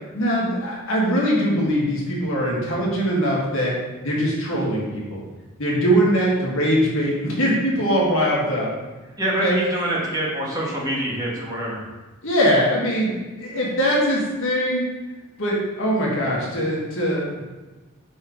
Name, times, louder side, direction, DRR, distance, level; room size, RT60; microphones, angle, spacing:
voice 1, 0.1-3.7 4.0-5.2 5.6-8.7 9.4-9.5 12.2-14.9 15.4-17.4, equal, 65° left, -4 dB, 1.8 m, -22 dB
voice 2, 9.2-11.8, right 1 dB, 15° right, -5 dB, 1.5 m, -25 dB
5.4 x 4.4 x 5.2 m, 1.2 s
head